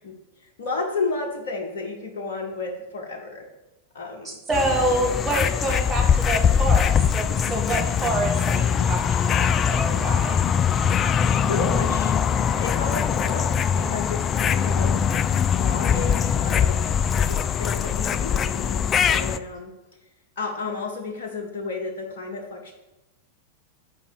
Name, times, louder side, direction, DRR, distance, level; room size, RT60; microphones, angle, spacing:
voice 1, 0.0-3.4 3.9-4.4 11.5-12.1 12.6-15.0 15.5-16.8 17.1-19.7 20.4-22.7, left 3 dB, 55° left, 1 dB, 1.0 m, -32 dB
voice 2, 4.2-10.5, right 2 dB, 15° right, 0 dB, 1.9 m, -27 dB
sound 1, 4.5-19.4, left 7 dB, 25° left, 0.3 m, -22 dB
5.4 x 5.2 x 6.3 m, 1.0 s
figure-of-eight pair, 90°, 0 cm